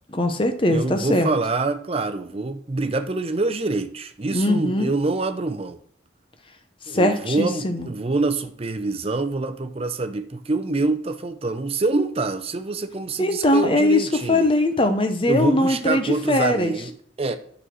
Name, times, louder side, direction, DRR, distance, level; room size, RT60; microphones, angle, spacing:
voice 1, 0.1-1.3 4.3-4.9 6.9-7.9 13.2-16.7, left 1 dB, 30° left, 0.9 m, -21 dB
voice 2, 0.7-5.8 6.9-14.5 15.3-17.4, right 3 dB, 35° right, 0.6 m, -25 dB
9.7 x 4.1 x 6.2 m
head